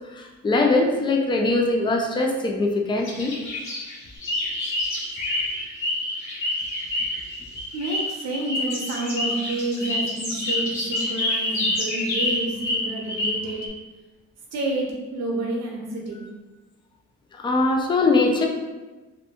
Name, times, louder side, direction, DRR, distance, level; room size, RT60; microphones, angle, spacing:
voice 1, 0.1-3.4 17.4-18.5, left 2 dB, 15° left, 1 dB, 0.3 m, -21 dB
sound 1, 3.0-5.9 6.1-7.3 7.7-8.4 8.7-12.4, left 2 dB, 70° left, 1.2 m, -31 dB
sound 2, 4.3-6.1 6.4-9.5 9.8-10.0 10.4-10.6 10.9-11.2 11.5-12.3 12.6-13.7, left 1 dB, 40° left, 1.0 m, -27 dB
voice 2, 7.7-13.6 14.5-16.3, right 2 dB, 60° right, -1 dB, 0.7 m, -29 dB
2.5 x 2.1 x 2.8 m, 1.2 s
cardioid pair, 90°, 30 cm